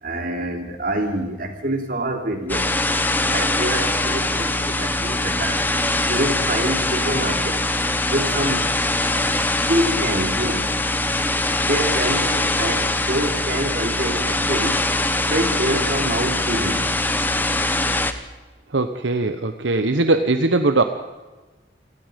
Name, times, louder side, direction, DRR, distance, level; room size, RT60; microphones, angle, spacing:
voice 1, 0.0-2.7 3.2-5.7 6.1-7.6 8.0-8.7 9.1-9.4 9.7-10.7 11.7-14.8 15.3-16.8, right 1 dB, 50° right, 5 dB, 3.3 m, -26 dB
sound 1, 2.5-18.1, left 2 dB, 10° left, 1.2 m, -22 dB
voice 2, 18.7-20.8, right 2 dB, 75° right, 8 dB, 1.1 m, -20 dB
28.5 x 18.5 x 5.2 m, 1.2 s
head